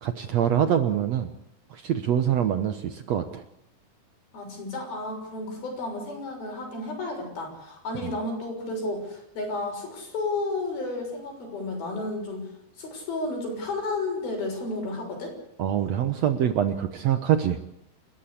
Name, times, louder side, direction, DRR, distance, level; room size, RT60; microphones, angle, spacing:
voice 1, 0.0-1.3 1.7-3.4 15.6-17.6, right 9 dB, 65° right, 9 dB, 1.7 m, -24 dB
voice 2, 4.3-12.5 12.8-15.3, left 2 dB, 85° left, 2 dB, 8.3 m, -32 dB
30.0 x 13.0 x 8.5 m, 0.78 s
omnidirectional pair, 4.2 m